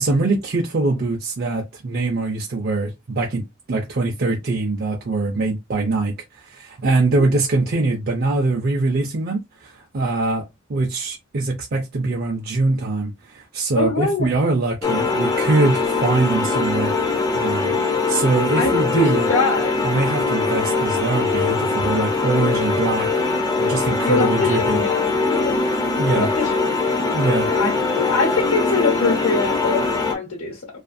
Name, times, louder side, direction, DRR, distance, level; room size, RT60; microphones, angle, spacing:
voice 1, 0.0-3.4 3.7-10.4 10.7-16.9 17.3-19.3 19.8-23.2 23.6-24.8 26.0-26.3 27.1-27.5, right 2 dB, 50° right, 0.5 m, -23 dB
voice 2, 13.7-14.3 18.6-19.7 24.0-25.0 25.3-25.6 26.1-26.6 27.0-30.7, left 3 dB, 80° left, 1.0 m, -23 dB
sound 1, 14.8-30.1, left 3 dB, 20° left, 0.4 m, -22 dB
2.4 x 2.4 x 2.5 m
head